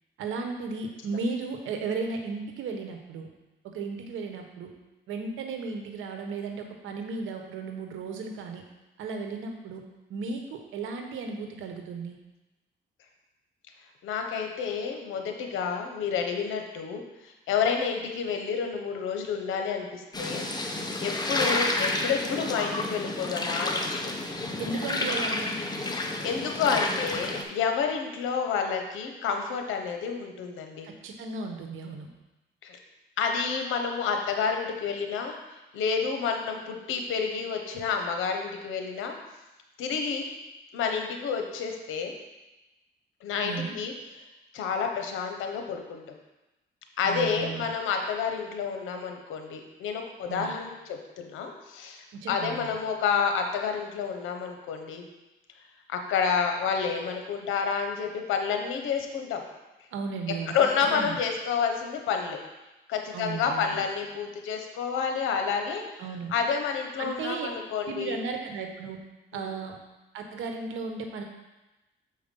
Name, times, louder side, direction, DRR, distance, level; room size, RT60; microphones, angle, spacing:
voice 1, 0.2-3.3 3.6-4.7 5.1-8.6 9.0-9.8 10.1-12.2 24.6-25.6 30.8-32.1 43.4-43.8 47.0-47.7 50.3-50.5 52.2-52.7 59.9-60.5 60.9-61.2 63.1-63.8 66.0-66.3 67.0-67.5 67.8-69.0 69.3-69.8 70.1-71.2, right 4 dB, 85° right, 4 dB, 1.1 m, -35 dB
voice 2, 14.0-24.1 26.2-30.9 32.6-32.8 33.2-39.1 39.8-40.3 40.7-42.1 43.2-43.9 44.5-46.0 47.0-55.0 55.9-59.4 60.5-62.4 62.9-66.0 66.3-68.2 69.3-69.5, left 6 dB, 85° left, 4 dB, 1.1 m, -29 dB
sound 1, 20.1-27.4, left 2 dB, 20° left, 0.9 m, -30 dB
6.8 x 4.7 x 5.4 m, 1.0 s
cardioid pair, 90°, 20 cm